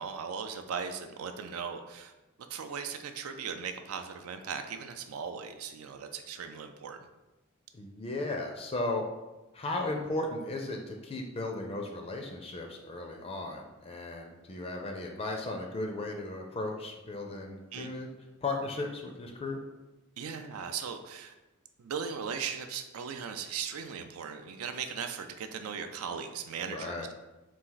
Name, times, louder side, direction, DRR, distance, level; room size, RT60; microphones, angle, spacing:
voice 1, 0.0-2.1 2.5-7.0 17.7-17.9 20.2-21.3 21.8-27.1, right 6 dB, 85° right, 7 dB, 0.4 m, -38 dB
voice 2, 7.7-9.0 9.5-18.1 18.4-19.6 26.6-27.1, left 2 dB, 30° left, 2 dB, 0.4 m, -36 dB
4.2 x 2.5 x 3.8 m, 1.1 s
head